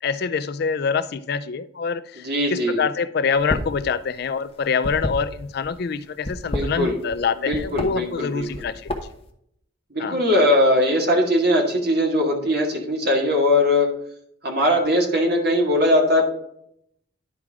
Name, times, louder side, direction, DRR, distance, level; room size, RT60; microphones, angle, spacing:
voice 1, 0.0-8.9 10.0-10.2, left 5 dB, 50° left, 14 dB, 0.3 m, -25 dB
voice 2, 2.2-2.8 6.5-7.0 7.5-8.6 9.9-13.9 14.4-16.2, left 1 dB, 50° right, 1 dB, 2.0 m, -20 dB
sound 1, 3.4-3.8 4.1-5.7 6.2-7.2 7.5-7.9 8.4-9.2, left 1 dB, 30° left, 0.9 m, -28 dB
11.0 x 4.8 x 3.6 m, 0.72 s
head